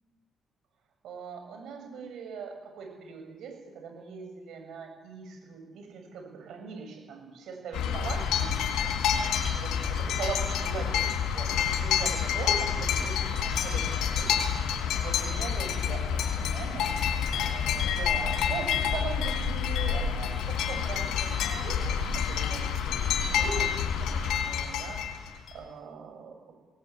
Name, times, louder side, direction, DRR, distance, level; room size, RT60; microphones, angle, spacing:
voice 1, 1.0-8.6 9.5-11.0 11.3-14.4 15.0-16.9 17.4-26.5, right 6 dB, 75° right, 4 dB, 7.2 m, -41 dB
sound 1, 7.7-25.5, left 8 dB, 85° left, 3.6 m, -28 dB
20.5 x 19.5 x 8.6 m, 1.3 s
cardioid pair, 90°, 0 cm